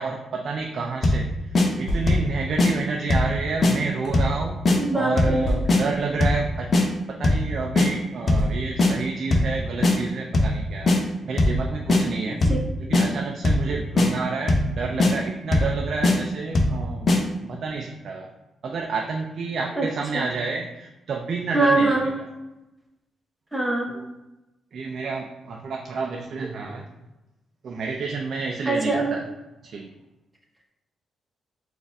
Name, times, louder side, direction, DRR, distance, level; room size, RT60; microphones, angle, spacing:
voice 1, 0.0-4.6 4.9-6.7 7.1-12.4 12.8-17.1 17.4-18.3 18.6-22.2 23.9-24.1 24.7-26.9 27.6-29.2 29.6-29.9, right 4 dB, 60° right, 2 dB, 0.4 m, -30 dB
sound 1, 1.0-1.3 1.5-1.7 2.1-2.3 2.6-2.7 3.1-3.3 3.6-3.7 4.1-4.4 4.6-4.8 5.2-5.4 5.7-5.8 6.2-6.4 6.7-6.8 7.2-7.5 7.8-7.9 8.3-8.5 8.8-8.9 9.3-9.5 9.8-9.9 10.3-10.6 10.9-11.0 11.4-11.6 11.9-12.0 12.4-12.6 12.9-13.1 13.4-13.7 14.0-14.1 14.5-14.7 15.0-15.1 15.5-15.7 16.0-16.2 16.5-16.8 17.1-17.2, left 2 dB, 45° left, 0.6 m, -18 dB
sound 2, 1.8-2.5 3.3-4.3 5.4-6.0 6.9-7.1 7.3-7.4 8.3-9.0 9.9-10.1 11.4-12.0, equal, 75° left, 1.1 m, -30 dB
voice 2, 4.7-5.5 12.3-12.6 19.7-19.9 20.1-20.3 21.5-22.2 23.5-23.9 28.7-29.2, right 2 dB, 5° right, -1 dB, 0.9 m, -23 dB
4.0 x 2.5 x 3.4 m, 0.99 s
cardioid pair, 85°, 0 cm